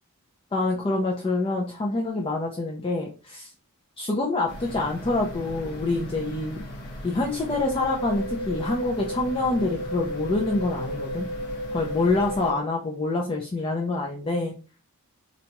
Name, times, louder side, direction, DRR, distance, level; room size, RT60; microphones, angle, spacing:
voice 1, 0.5-3.5 4.0-6.6 7.0-11.3 11.7-14.5, left 2 dB, 25° left, -1 dB, 0.4 m, -26 dB
sound 1, 4.5-12.5, equal, 85° left, 1.0 m, -39 dB
sound 2, 7.5-12.5, equal, 50° right, 0.9 m, -33 dB
3.9 x 2.2 x 2.9 m, 0.36 s
head